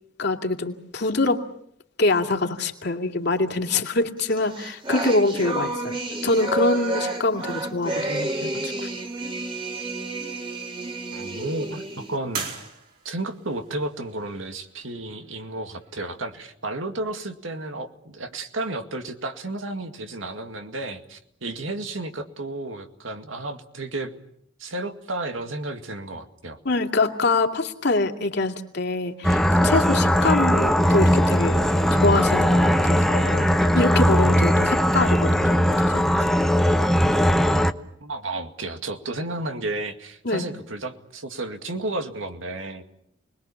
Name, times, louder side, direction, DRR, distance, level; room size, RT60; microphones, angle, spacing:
voice 1, 0.2-1.4 2.0-6.0 6.2-8.9 26.6-36.2 40.2-40.5, left 2 dB, 60° left, 4 dB, 2.5 m, -25 dB
sound 1, 4.3-12.2, right 2 dB, 25° right, 2.3 m, -30 dB
sound 2, 8.0-16.4, right 5 dB, 50° right, 4.9 m, -43 dB
voice 2, 11.1-12.5 13.0-24.1 24.6-26.6 38.0-42.8, right 2 dB, 85° right, 6 dB, 2.2 m, -32 dB
sound 3, 29.2-37.7, equal, ahead, 0.9 m, -19 dB
29.5 x 21.0 x 7.2 m, 0.73 s
head